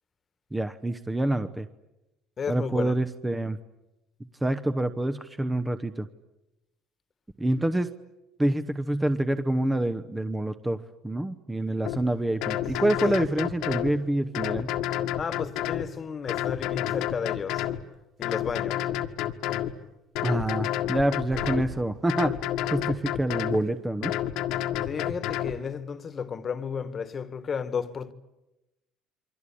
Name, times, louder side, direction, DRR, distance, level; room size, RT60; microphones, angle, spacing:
voice 1, 0.5-1.7 2.5-3.6 4.4-6.1 7.4-7.9 8.4-14.7 20.2-22.3 22.7-24.1, right 1 dB, 10° right, 1.0 m, -27 dB
voice 2, 2.4-2.9 15.2-17.7 18.2-18.9 24.9-28.1, left 6 dB, 30° left, 1.6 m, -33 dB
sound 1, 11.9-12.0 12.4-13.9 14.3-15.9 16.3-17.8 18.2-19.7 20.2-21.7 22.1-23.6 24.0-25.6, left 12 dB, 75° left, 1.8 m, -29 dB
sound 2, 12.0-15.9 16.4-16.5 16.8-17.2 17.6-17.7 18.2-18.3 21.3-24.0, right 5 dB, 50° right, 5.0 m, -50 dB
29.0 x 24.0 x 8.6 m
cardioid pair, 130°, 0 cm